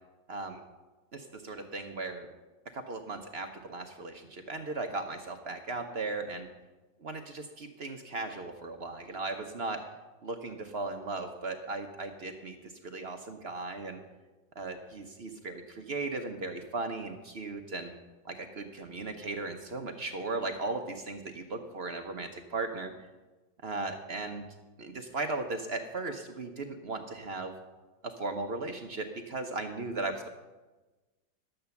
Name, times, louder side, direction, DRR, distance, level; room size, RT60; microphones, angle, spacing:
voice 1, 0.3-0.6 1.1-2.3 2.7-6.5 7.0-9.8 10.2-14.0 14.6-17.9 18.2-22.9 23.6-24.5 24.8-27.5 28.0-30.3, right 3 dB, 50° right, 5 dB, 0.7 m, -37 dB
11.5 x 7.8 x 7.0 m, 1.2 s
omnidirectional pair, 2.0 m